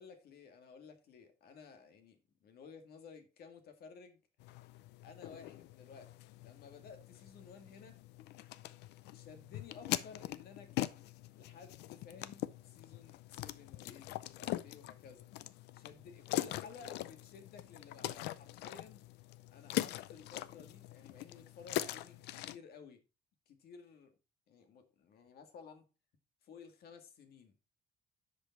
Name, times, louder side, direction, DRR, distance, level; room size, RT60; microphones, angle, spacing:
voice 1, 0.0-4.2 5.0-8.0 9.1-15.3 15.7-19.0 19.5-23.0 23.5-24.1 24.5-25.9 26.4-27.6, left 5 dB, 65° left, 1.9 m, -55 dB
sound 1, 4.4-22.6, left 15 dB, 85° left, 0.6 m, -42 dB
10.5 x 5.2 x 4.1 m
cardioid pair, 110°, 17 cm